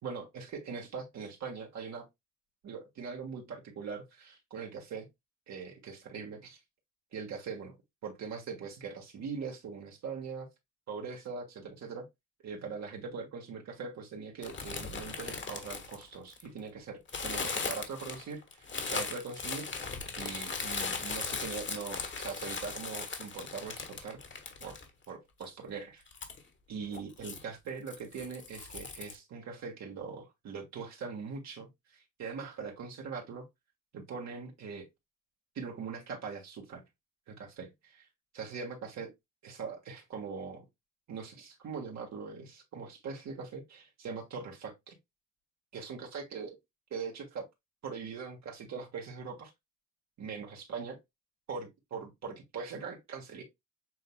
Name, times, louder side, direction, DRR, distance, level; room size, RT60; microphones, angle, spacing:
voice 1, 0.0-2.1 2.6-5.1 5.5-6.6 7.1-7.8 8.0-10.5 10.9-12.1 12.4-24.2 24.6-24.8 25.1-26.0 26.7-33.4 33.9-34.9 35.5-36.8 37.3-38.1 38.3-39.1 39.4-40.7 41.1-45.0 45.7-46.6 46.9-47.4 47.8-49.5 50.2-51.0 51.5-53.4, right 5 dB, 65° right, 1.5 m, -41 dB
sound 1, 14.4-16.6 17.1-25.1 25.4-25.5 26.1-26.4 26.9-27.4 27.9-29.2, left 4 dB, 40° left, 1.4 m, -38 dB
7.6 x 2.9 x 2.2 m
cardioid pair, 90°, 30 cm